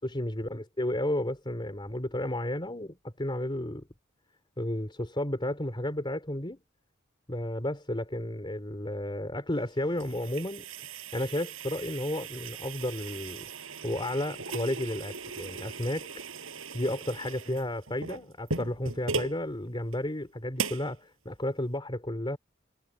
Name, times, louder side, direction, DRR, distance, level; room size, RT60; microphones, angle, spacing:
voice 1, 0.0-3.9 4.6-6.6 7.3-10.7 11.1-13.4 13.8-16.1 16.7-22.4, left 1 dB, 25° left, 3.8 m, -32 dB
sound 1, 9.6-19.4 19.9-20.0 20.6-20.9, right 4 dB, 85° right, 7.9 m, -38 dB
head